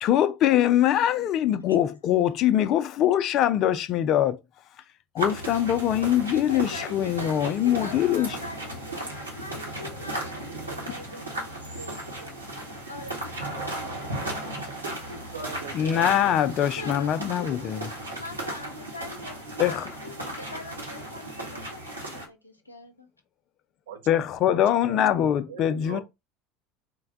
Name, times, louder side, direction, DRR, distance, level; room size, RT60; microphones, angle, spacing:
voice 1, 0.0-4.4 5.1-8.3 15.7-17.9 19.6-19.9 24.1-26.0, left 11 dB, 45° left, 0.4 m, -23 dB
sound 1, 5.2-22.3, right 1 dB, 85° right, 1.1 m, -35 dB
voice 2, 6.3-12.4 12.9-14.2 16.8-23.1, left 2 dB, 85° left, 0.6 m, -42 dB
voice 3, 14.8-16.1 23.9-25.0 25.5-26.0, right 5 dB, 65° right, 0.6 m, -41 dB
3.9 x 2.2 x 3.7 m
figure-of-eight pair, 70°, 0 cm